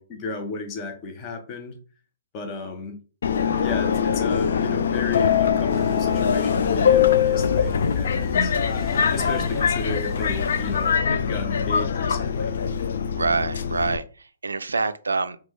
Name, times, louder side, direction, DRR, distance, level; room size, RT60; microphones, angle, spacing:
voice 1, 0.0-1.8 2.3-3.0 3.6-8.5 9.1-12.6, left 3 dB, 30° left, 0.8 m, -33 dB
Subway metro underground, 3.2-14.0, left 7 dB, 70° left, 0.3 m, -22 dB
sound 1, 5.7-10.9, equal, ahead, 0.7 m, -39 dB
voice 2, 13.1-15.4, right 4 dB, 90° right, 0.3 m, -26 dB
3.2 x 2.2 x 3.1 m
hypercardioid pair, 130°, 0 cm